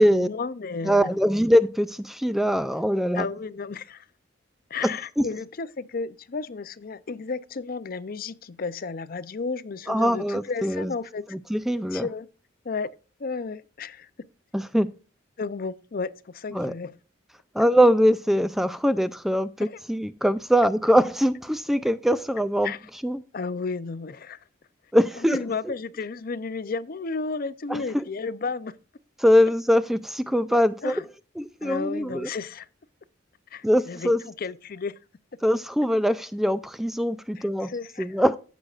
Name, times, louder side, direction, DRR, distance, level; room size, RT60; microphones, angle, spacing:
voice 1, 0.0-1.1 3.1-4.1 4.7-11.2 11.9-12.3 12.6-12.9 13.2-14.3 15.4-16.9 19.6-19.8 22.6-22.8 23.3-24.4 25.3-28.8 30.8-31.0 31.6-32.7 33.5-34.1 34.4-35.0 37.4-38.2, left 4 dB, 50° left, 0.5 m, -33 dB
voice 2, 0.8-3.2 5.2-5.3 9.9-10.9 11.3-12.1 14.5-14.9 16.5-16.7 17.6-22.7 23.0-23.2 24.9-25.4 27.7-28.0 29.2-30.9 31.4-32.3 33.6-34.2 35.4-37.7 38.0-38.4, equal, ahead, 0.3 m, -22 dB
16.0 x 6.3 x 2.4 m
head